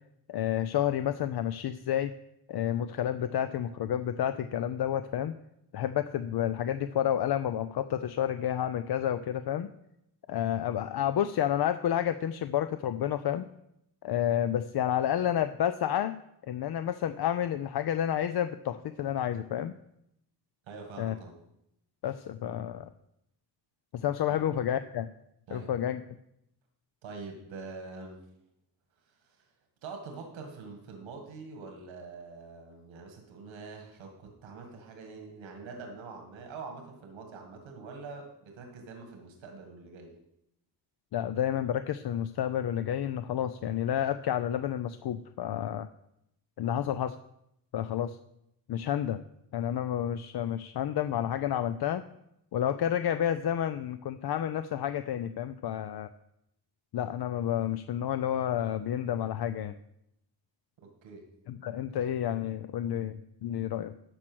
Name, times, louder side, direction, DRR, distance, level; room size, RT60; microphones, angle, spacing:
voice 1, 0.3-2.1 2.5-5.3 5.7-9.7 10.3-13.5 14.0-16.1 16.5-19.7 21.0-21.2 22.0-22.9 23.9-25.1 25.5-26.0 41.1-45.9 46.6-47.2 47.7-48.2 48.7-49.2 49.5-52.0 52.5-56.1 56.9-59.7 61.5-63.9, left 10 dB, 60° left, 11 dB, 0.6 m, -30 dB
voice 2, 20.7-21.3 24.3-24.4 25.5-25.7 27.0-28.2 29.4-29.5 29.8-40.2 60.8-61.3, right 4 dB, 85° right, 3 dB, 1.9 m, -45 dB
12.5 x 4.6 x 6.1 m, 0.80 s
cardioid pair, 60°, 45 cm